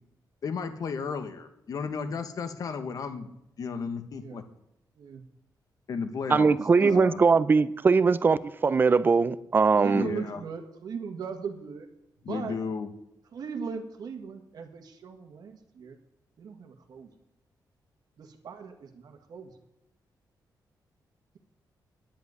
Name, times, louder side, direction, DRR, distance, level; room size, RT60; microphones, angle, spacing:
voice 1, 0.4-3.3 3.6-4.4 5.9-7.2 9.9-10.4 12.2-12.9, left 5 dB, 55° left, 1.2 m, -34 dB
voice 2, 4.1-4.4 4.9-5.2 6.4-7.0 9.7-11.9 12.2-12.6 13.3-16.0 16.4-17.1 18.2-19.5, right 6 dB, 65° right, 1.7 m, -38 dB
voice 3, 6.3-10.1, right 4 dB, 30° right, 0.5 m, -21 dB
10.5 x 7.7 x 9.4 m
wide cardioid pair, 180°, 7 cm